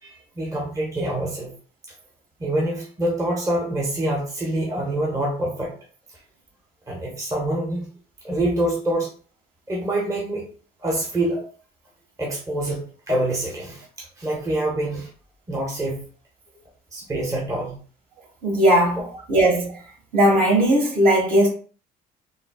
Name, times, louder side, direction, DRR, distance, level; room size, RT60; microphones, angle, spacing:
voice 1, 0.0-1.5 2.4-5.7 6.9-7.9 8.2-9.1 9.7-10.5 10.8-11.4 12.2-15.1 15.5-16.0 16.9-17.8 19.0-19.1, right 1 dB, 20° right, 0.8 m, -26 dB
voice 2, 18.4-19.0 19.3-19.7 20.1-21.5, right 1 dB, 60° right, 1.5 m, -17 dB
3.8 x 2.0 x 2.2 m
cardioid pair, 110°, 17 cm